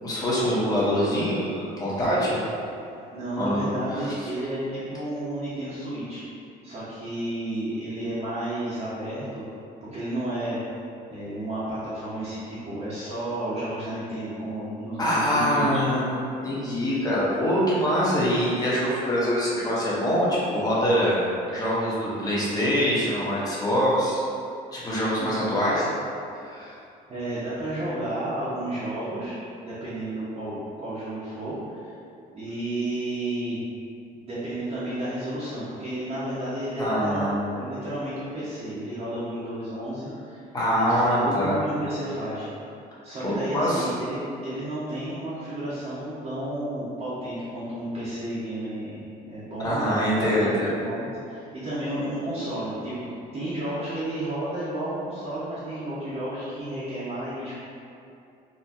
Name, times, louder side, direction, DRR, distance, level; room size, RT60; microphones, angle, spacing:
voice 1, 0.0-2.4 3.4-3.6 3.9-4.1 15.0-21.2 21.5-24.2 24.7-25.9 26.5-26.7 36.8-37.3 40.5-41.5 43.2-43.9 49.6-50.7, equal, 20° left, -8 dB, 1.0 m, -24 dB
voice 2, 3.1-6.2 6.6-9.4 9.9-10.6 11.1-15.8 25.2-25.3 27.1-29.3 29.6-31.9 32.3-33.6 34.1-40.4 40.8-42.5 43.0-57.5, right 1 dB, 40° right, -12 dB, 0.9 m, -32 dB
4.1 x 2.2 x 2.8 m, 2.6 s
cardioid pair, 110°, 17 cm